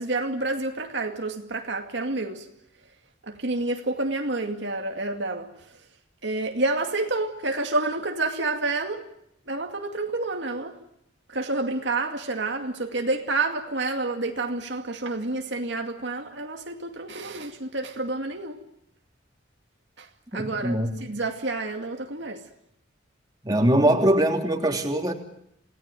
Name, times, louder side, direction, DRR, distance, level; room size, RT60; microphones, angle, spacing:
voice 1, 0.0-2.5 3.3-5.5 6.2-9.1 9.5-10.8 11.3-18.6 20.0-20.1 20.3-22.4, right 2 dB, 65° right, 2.4 m, -29 dB
voice 2, 20.3-20.9 23.4-25.1, right 1 dB, 20° right, 3.3 m, -22 dB
28.5 x 18.5 x 9.1 m
head